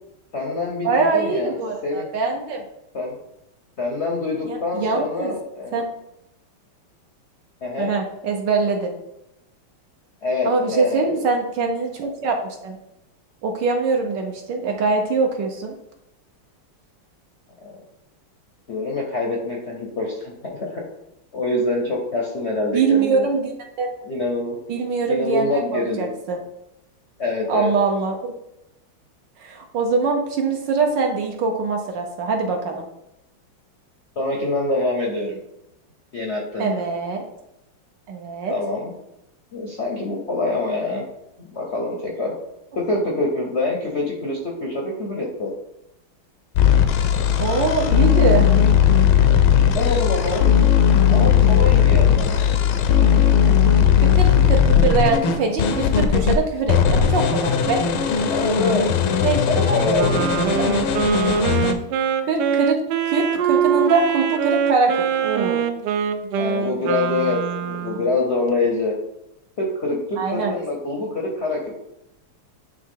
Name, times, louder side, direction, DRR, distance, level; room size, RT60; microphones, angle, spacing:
voice 1, 0.3-1.6 1.8-2.1 2.9-3.1 3.8-5.8 7.6-7.9 10.2-11.1 17.6-17.8 18.7-20.8 21.3-23.3 24.0-24.5 25.1-26.1 27.2-27.7 34.2-35.4 36.1-36.8 38.5-38.9 39.5-41.0 41.4-42.3 42.7-45.5 49.7-50.4 51.1-52.4 58.3-60.3 66.4-68.9 69.6-71.6, left 2 dB, 55° left, -1 dB, 0.8 m, -25 dB
voice 2, 0.8-2.6 4.5-5.4 5.7-5.9 7.8-8.9 10.4-12.8 13.4-15.8 22.7-23.5 23.8-23.9 24.7-26.4 27.5-28.3 29.4-32.9 36.6-37.3 38.1-38.5 47.4-48.5 54.0-57.8 59.2-59.4 59.7-60.7 62.2-62.8 63.1-65.7 70.2-70.5, right 4 dB, 65° right, 2 dB, 1.3 m, -23 dB
sound 1, 46.6-56.4 56.7-61.7, left 8 dB, 75° left, 1.4 m, -17 dB
Wind instrument woodwind instrument, 59.9-68.2, right 8 dB, 90° right, 0.9 m, -23 dB
9.4 x 3.3 x 3.7 m, 0.85 s
omnidirectional pair, 2.4 m